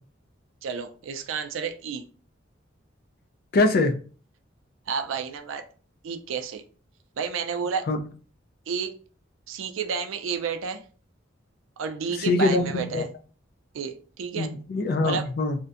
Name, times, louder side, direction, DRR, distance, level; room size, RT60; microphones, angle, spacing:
voice 1, 0.6-2.0 4.9-5.7 6.0-6.6 7.2-7.9 8.7-8.9 9.5-10.8 11.8-13.1 13.7-14.5 15.0-15.3, right 6 dB, 80° right, 0.4 m, -31 dB
voice 2, 3.5-3.9 7.9-8.0 12.2-13.0 14.4-15.6, left 2 dB, 50° left, 0.3 m, -23 dB
2.5 x 2.1 x 2.4 m
head